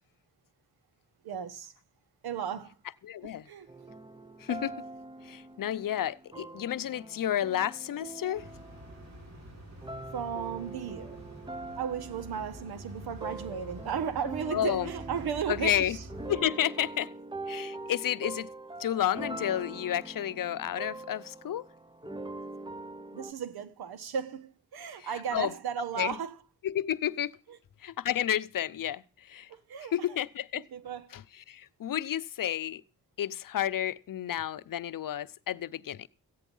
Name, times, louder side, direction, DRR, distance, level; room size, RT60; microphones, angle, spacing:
voice 1, 1.2-1.7 2.2-2.7 3.2-3.7 10.1-11.2 11.8-16.0 23.1-26.4 27.5-27.6 29.5-30.2 30.7-31.1, right 7 dB, 85° right, 1.3 m, -35 dB
voice 2, 3.0-3.5 4.4-4.7 5.2-8.5 14.5-14.9 15.5-16.0 16.3-17.1 17.5-18.5 18.8-21.6 25.0-25.5 26.0-26.1 26.6-27.3 27.8-29.5 29.9-30.6 31.1-31.2 31.5-32.8 33.2-36.1, left 11 dB, 60° left, 0.7 m, -31 dB
sound 1, 3.7-9.4 9.8-23.3, right 2 dB, 15° right, 0.8 m, -43 dB
sound 2, 8.3-16.4, right 1 dB, 45° right, 6.3 m, -47 dB
15.0 x 9.3 x 5.5 m
cardioid pair, 60°, 37 cm